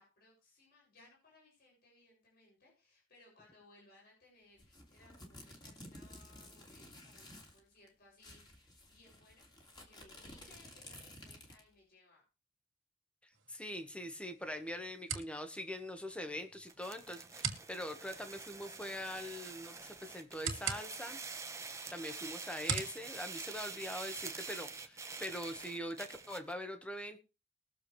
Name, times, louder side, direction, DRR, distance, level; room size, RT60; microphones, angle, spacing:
voice 1, 0.0-12.2, left 2 dB, 50° left, -3 dB, 7.2 m, -65 dB
sound 1, 4.6-7.6 7.9-8.0 8.2-11.7, left 1 dB, 20° left, 2.7 m, -54 dB
sound 2, 13.3-24.3, right 7 dB, 75° right, 2.6 m, -45 dB
voice 2, 13.5-21.2 21.9-27.2, equal, 5° left, 6 dB, 1.4 m, -43 dB
sound 3, 16.7-26.5, right 4 dB, 15° right, 1.0 m, -47 dB
21.5 x 7.3 x 3.3 m, 0.31 s
head